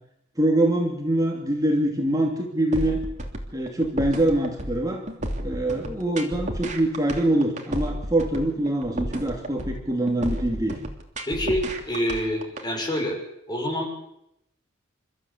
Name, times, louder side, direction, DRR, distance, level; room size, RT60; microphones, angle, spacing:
voice 1, 0.4-3.0 3.5-5.0 5.4-10.8, right 1 dB, 20° right, 1 dB, 2.6 m, -24 dB
sound 1, 2.7-12.7, right 1 dB, 35° right, 3.1 m, -32 dB
voice 2, 11.3-13.2 13.5-14.0, equal, 20° left, 2 dB, 6.0 m, -27 dB
28.5 x 14.0 x 8.4 m, 0.81 s
head